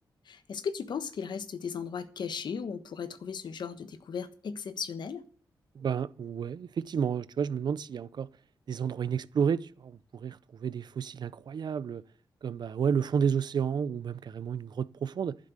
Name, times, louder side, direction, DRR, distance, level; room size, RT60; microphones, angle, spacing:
voice 1, 0.3-5.2, left 6 dB, 70° left, 1.3 m, -36 dB
voice 2, 5.7-8.3 8.7-12.0 12.4-15.4, right 7 dB, 65° right, 0.6 m, -31 dB
11.0 x 7.6 x 8.0 m
cardioid pair, 90°, 8 cm